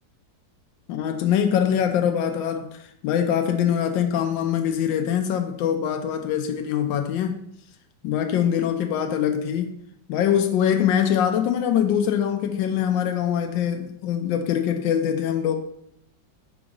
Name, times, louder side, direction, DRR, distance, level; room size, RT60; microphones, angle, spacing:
voice 1, 0.9-7.4 8.0-9.7 10.1-15.6, left 9 dB, 90° left, 1.3 m, -23 dB
4.9 x 3.9 x 5.1 m
omnidirectional pair, 2.0 m